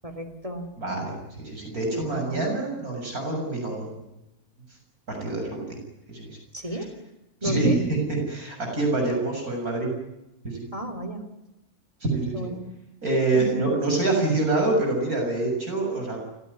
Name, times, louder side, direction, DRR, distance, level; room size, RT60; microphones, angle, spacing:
voice 1, 0.0-0.7 1.9-2.4 6.5-6.9 7.4-7.8 10.7-11.3 12.3-12.7 13.3-13.5, right 1 dB, 25° right, 6 dB, 3.3 m, -32 dB
voice 2, 0.8-4.0 5.1-5.8 6.1-6.3 6.7-6.8 7.4-9.9 10.4-10.7 12.0-12.5 13.0-16.2, right 2 dB, 85° right, 1 dB, 7.6 m, -26 dB
29.0 x 17.5 x 9.8 m, 0.93 s
omnidirectional pair, 1.5 m